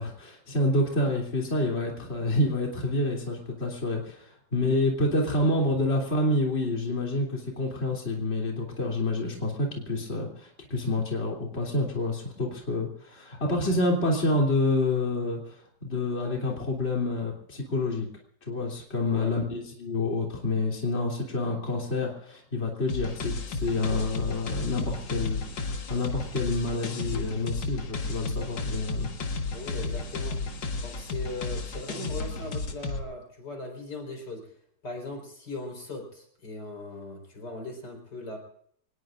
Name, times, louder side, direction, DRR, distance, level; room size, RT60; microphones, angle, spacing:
voice 1, 0.0-18.1 18.5-29.1, left 2 dB, 35° left, -1 dB, 3.4 m, -28 dB
voice 2, 19.1-19.4 29.5-34.5 34.8-38.4, left 2 dB, 70° left, 3 dB, 5.1 m, -39 dB
sound 1, 22.9-33.0, left 3 dB, 90° left, 2.4 m, -33 dB
25.0 x 20.0 x 2.6 m, 0.65 s
omnidirectional pair, 1.9 m